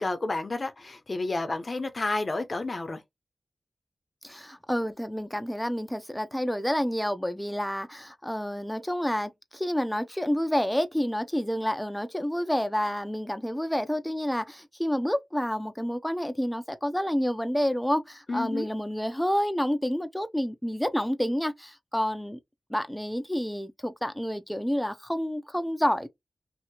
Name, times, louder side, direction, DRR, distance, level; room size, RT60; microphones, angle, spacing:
voice 1, 0.0-3.0 18.3-18.7, left 2 dB, 50° left, 0.8 m, -30 dB
voice 2, 4.2-22.4 22.7-26.1, equal, 5° left, 0.7 m, -29 dB
2.8 x 2.8 x 2.8 m
cardioid pair, 40°, 0 cm